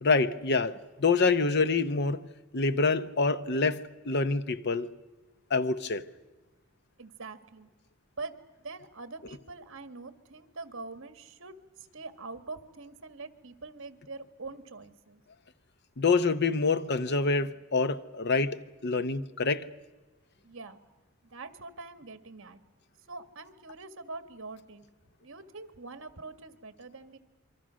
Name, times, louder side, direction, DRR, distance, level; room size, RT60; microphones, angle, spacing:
voice 1, 0.0-2.3 2.5-4.9 5.5-6.0 16.0-19.7, left 4 dB, 50° left, 0.9 m, -26 dB
voice 2, 7.0-7.7 8.2-11.6 11.9-15.2 20.4-20.8 21.2-22.6 23.1-24.8 25.2-27.2, right 3 dB, 65° right, 1.7 m, -44 dB
27.5 x 24.0 x 6.3 m
head